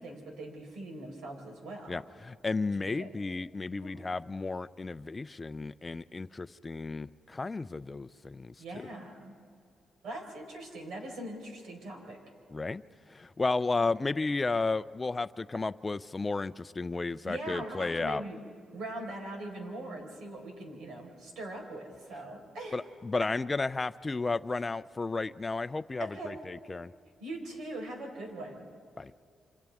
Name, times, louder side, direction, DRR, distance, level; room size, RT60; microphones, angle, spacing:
voice 1, 0.0-2.0 2.9-3.2 3.8-4.4 8.6-9.3 10.0-12.2 17.2-18.4 18.7-22.8 26.0-26.4 27.2-28.7, right 1 dB, 85° right, 2 dB, 4.6 m, -41 dB
voice 2, 1.9-8.5 12.5-12.8 13.1-18.2 22.7-26.9 29.0-29.1, left 3 dB, 20° left, 13 dB, 0.4 m, -33 dB
27.5 x 27.0 x 3.6 m, 2.4 s
cardioid pair, 120°, 0 cm